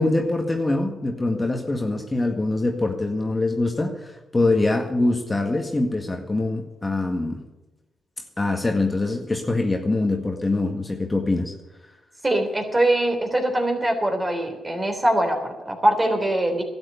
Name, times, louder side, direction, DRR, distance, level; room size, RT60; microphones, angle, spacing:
voice 1, 0.0-7.4 8.4-11.5, left 2 dB, 25° left, 2 dB, 1.8 m, -24 dB
voice 2, 12.2-16.6, right 1 dB, 25° right, 4 dB, 3.5 m, -22 dB
12.0 x 8.0 x 9.5 m, 1.1 s
supercardioid pair, 50°, 0 cm